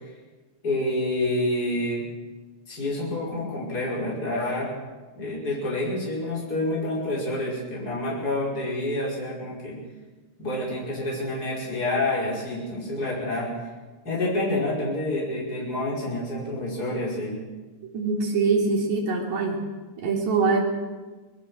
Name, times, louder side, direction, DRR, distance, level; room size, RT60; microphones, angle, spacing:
voice 1, 0.6-2.0 2.7-4.7 5.2-9.8 10.4-13.5 14.0-17.4, left 1 dB, 30° left, -4 dB, 6.4 m, -28 dB
voice 2, 17.9-19.6 20.0-20.6, right 4 dB, 70° right, 0 dB, 4.5 m, -23 dB
25.0 x 20.5 x 6.6 m, 1.3 s
omnidirectional pair, 3.3 m